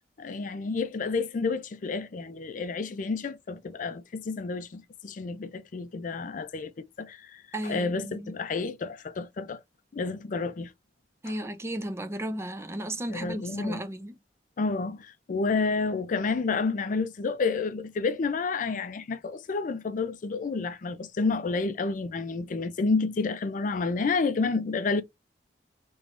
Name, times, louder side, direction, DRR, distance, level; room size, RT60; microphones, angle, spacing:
voice 1, 0.2-6.7 7.0-9.6 9.9-10.7 13.1-13.8 14.6-25.0, left 4 dB, 50° left, 0.4 m, -30 dB
voice 2, 7.5-8.3 11.2-14.2, right 1 dB, 15° right, 0.5 m, -34 dB
3.4 x 3.1 x 2.5 m
head